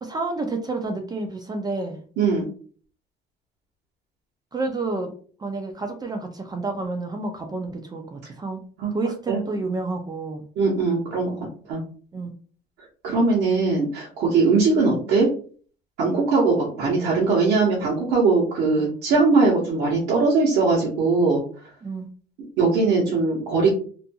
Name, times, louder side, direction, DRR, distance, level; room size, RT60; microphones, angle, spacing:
voice 1, 0.0-2.0 4.5-5.1 5.4-8.6 8.9-10.4 12.1-12.3 18.8-19.0 21.8-22.1, right 3 dB, 25° right, 4 dB, 0.4 m, -29 dB
voice 2, 2.2-2.5 8.8-8.9 9.3-9.4 10.6-11.4 11.7-11.8 13.0-15.3 16.0-21.4 22.6-23.7, right 4 dB, 75° right, -6 dB, 1.0 m, -20 dB
2.6 x 2.5 x 2.3 m, 0.42 s
cardioid pair, 110°, 17 cm